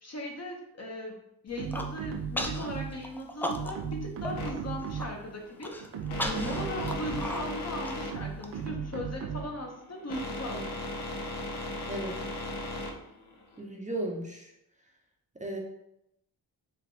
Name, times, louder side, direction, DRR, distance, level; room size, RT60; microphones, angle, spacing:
voice 1, 0.0-1.2 1.4-5.7 6.4-10.7, left 1 dB, 35° left, 1 dB, 0.9 m, -38 dB
Human voice, 1.5-1.9 2.4-2.7 3.0-3.9 4.2-4.3 4.7-5.1 5.6-8.5, left 1 dB, 5° left, 0.3 m, -35 dB
sound 1, 1.6-3.1 3.5-5.3 5.8-7.5 8.1-9.6, right 6 dB, 80° right, 0.6 m, -37 dB
sound 2, 4.4-13.6, left 1 dB, 70° left, 0.8 m, -38 dB
voice 2, 6.2-6.6 11.9-12.1 13.6-14.5 15.4-15.6, right 1 dB, 15° right, -1 dB, 0.7 m, -35 dB
3.3 x 2.3 x 3.9 m, 0.80 s
cardioid pair, 55°, 42 cm